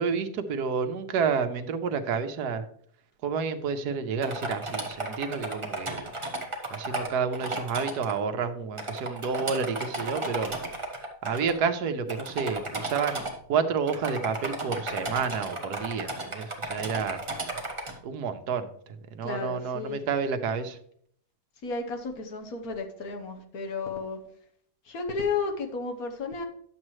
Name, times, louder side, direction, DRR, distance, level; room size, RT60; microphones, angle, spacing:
voice 1, 0.0-2.6 3.2-6.1 6.7-10.5 11.2-17.2 18.0-20.8, right 6 dB, 85° right, 9 dB, 1.3 m, -30 dB
sound 1, 4.2-8.1 8.8-11.5 12.1-13.3 13.9-17.9, right 2 dB, 20° right, 1.1 m, -34 dB
voice 2, 19.2-20.0 21.6-24.2 24.8-26.4, left 4 dB, 65° left, 4 dB, 1.5 m, -33 dB
10.5 x 7.4 x 3.1 m, 0.65 s
omnidirectional pair, 1.7 m